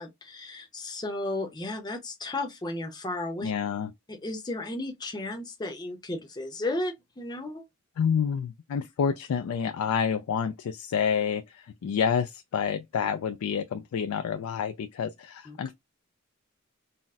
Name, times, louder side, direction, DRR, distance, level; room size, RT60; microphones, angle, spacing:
voice 1, 0.0-3.5 4.1-7.6 15.5-15.6, left 2 dB, 20° left, 0.6 m, -34 dB
voice 2, 3.4-3.9 8.0-15.7, left 7 dB, 85° left, 0.3 m, -28 dB
4.0 x 2.0 x 2.3 m
head